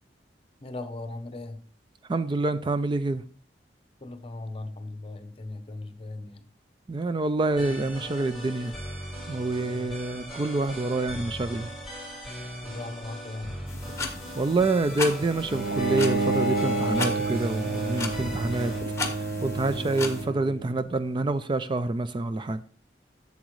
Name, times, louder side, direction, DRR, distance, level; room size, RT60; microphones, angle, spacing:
voice 1, 0.6-1.6 4.0-6.4 9.6-10.0 12.6-13.6 19.6-20.0, left 2 dB, 35° left, 0.8 m, -38 dB
voice 2, 2.1-3.2 6.9-8.7 9.3-11.7 14.4-18.7 19.4-22.6, right 2 dB, 25° right, 0.3 m, -27 dB
sound 1, 7.6-18.8, equal, ahead, 3.5 m, -39 dB
sound 2, 13.7-20.2, left 3 dB, 15° left, 1.2 m, -36 dB
Bowed string instrument, 15.5-20.7, right 3 dB, 60° right, 1.1 m, -29 dB
7.7 x 7.2 x 3.1 m
head